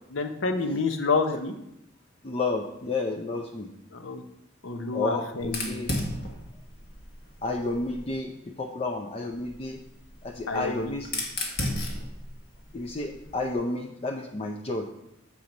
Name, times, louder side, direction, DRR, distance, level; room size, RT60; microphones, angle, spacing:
voice 1, 0.1-1.5 3.9-4.2 4.6-5.8 10.5-10.9, left 4 dB, 75° left, 7 dB, 0.8 m, -28 dB
voice 2, 2.2-3.7 4.9-5.9 7.4-9.8 10.2-11.1 12.7-14.9, left 2 dB, 30° left, 3 dB, 0.5 m, -31 dB
Fire, 5.4-8.2 9.3-13.5, left 1 dB, 55° left, 1.3 m, -35 dB
7.3 x 4.5 x 5.2 m, 0.82 s
head